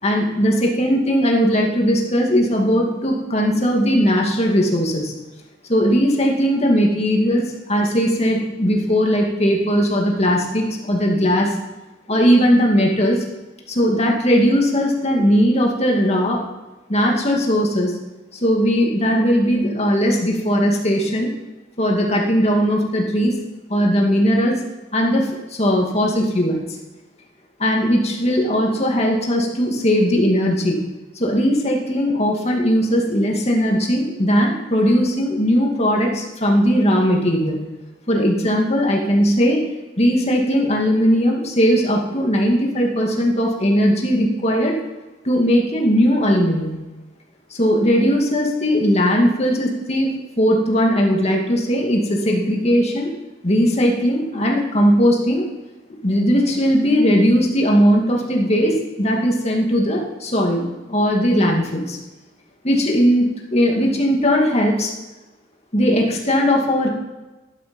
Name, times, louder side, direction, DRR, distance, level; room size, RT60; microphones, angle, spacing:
voice 1, 0.0-5.1 5.7-11.5 12.1-13.2 13.7-16.4 16.9-17.9 18.3-21.3 21.8-23.4 23.7-24.5 24.9-26.6 27.6-30.8 31.1-37.6 38.1-39.6 40.0-44.7 45.2-46.8 47.5-53.1 53.4-55.5 56.0-62.0 62.6-64.9 65.7-66.9, equal, 35° left, 0 dB, 2.4 m, -18 dB
12.0 x 11.0 x 5.4 m, 1.1 s
head